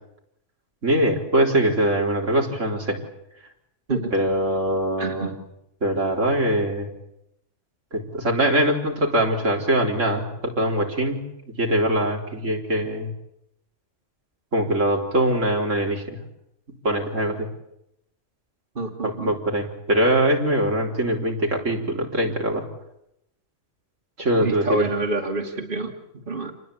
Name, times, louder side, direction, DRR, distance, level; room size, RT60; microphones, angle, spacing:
voice 1, 0.8-3.0 4.1-5.3 5.8-6.9 7.9-11.3 11.6-13.1 14.5-16.2 16.8-17.5 19.0-22.6 24.2-24.8, right 1 dB, 80° right, 0 dB, 4.3 m, -22 dB
voice 2, 5.0-5.3 18.8-19.3 24.4-25.9 26.3-26.5, right 2 dB, 45° right, 2 dB, 2.8 m, -27 dB
29.0 x 20.5 x 8.6 m, 0.83 s
omnidirectional pair, 1.3 m